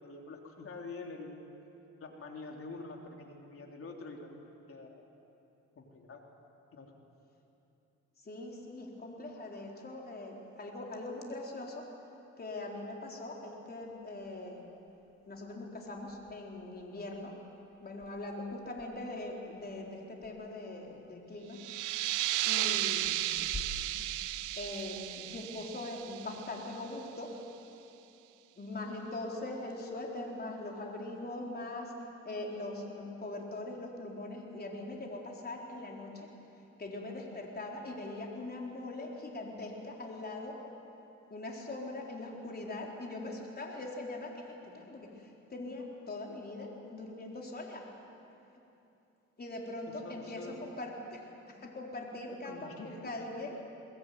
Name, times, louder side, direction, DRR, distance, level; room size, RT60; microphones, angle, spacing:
voice 1, 0.0-1.5 2.0-5.0 5.8-6.2 6.7-6.9 22.5-22.8 49.9-50.6 52.3-53.1, left 3 dB, 45° left, 1 dB, 3.5 m, -46 dB
voice 2, 8.2-11.9 12.4-14.7 15.3-17.4 17.8-21.7 22.1-23.2 24.6-27.3 28.6-36.3 36.8-40.6 41.3-47.9 49.4-53.6, left 2 dB, 30° left, -1 dB, 4.2 m, -42 dB
sound 1, 13.8-27.1, left 2 dB, 15° left, 2.6 m, -53 dB
sound 2, 21.5-26.9, right 15 dB, 85° right, 0.7 m, -34 dB
23.0 x 20.0 x 9.4 m, 2.9 s
cardioid pair, 90°, 30 cm